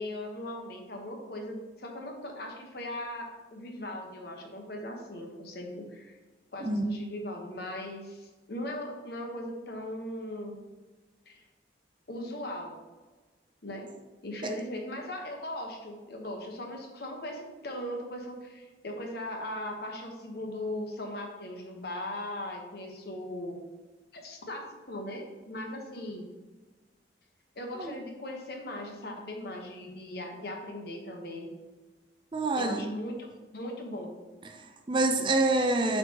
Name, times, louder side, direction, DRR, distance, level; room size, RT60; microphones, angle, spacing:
voice 1, 0.0-6.2 6.5-10.6 11.3-11.4 12.1-12.7 13.6-13.9 14.2-23.6 24.1-26.3 27.5-31.5 32.5-33.3 33.5-34.1, left 1 dB, 60° left, 2 dB, 1.1 m, -39 dB
voice 2, 32.3-32.8 34.5-36.0, right 2 dB, 25° right, 6 dB, 0.4 m, -27 dB
7.8 x 4.5 x 2.8 m, 1.3 s
head